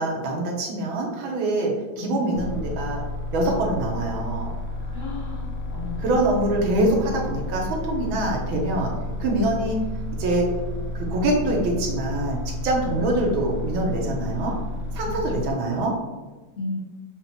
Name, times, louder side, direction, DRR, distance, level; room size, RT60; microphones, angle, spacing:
voice 1, 0.0-3.0 3.3-4.5 6.0-8.9 9.2-9.8 10.2-10.5 10.9-14.5 14.9-16.0, right 1 dB, 80° right, 0 dB, 1.5 m, -24 dB
sound 1, 2.3-15.5, left 2 dB, 90° left, 1.4 m, -31 dB
voice 2, 4.9-6.1 14.4-14.6 15.3-16.0 16.6-16.8, left 3 dB, 40° left, -8 dB, 2.0 m, -35 dB
5.3 x 2.5 x 2.8 m, 1.2 s
omnidirectional pair, 2.1 m